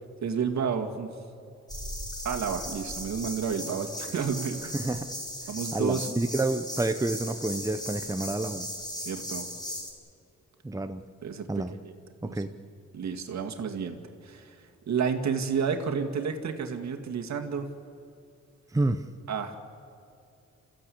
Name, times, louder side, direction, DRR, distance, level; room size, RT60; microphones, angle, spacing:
voice 1, 0.2-1.1 2.2-4.7 5.5-6.1 9.0-9.5 11.2-11.5 11.8-11.9 12.2-12.4 12.9-14.0 14.2-14.6 14.9-17.7 19.3-19.6, right 6 dB, 70° right, 4 dB, 2.1 m, -30 dB
sound 1, 1.7-9.9, equal, 15° left, 6.2 m, -37 dB
voice 2, 4.7-5.1 5.7-8.7 10.6-11.0 11.5-11.7 12.2-12.5 18.7-19.0, right 2 dB, 10° right, 9 dB, 0.9 m, -29 dB
28.5 x 15.0 x 8.5 m, 2.6 s
cardioid pair, 100°, 29 cm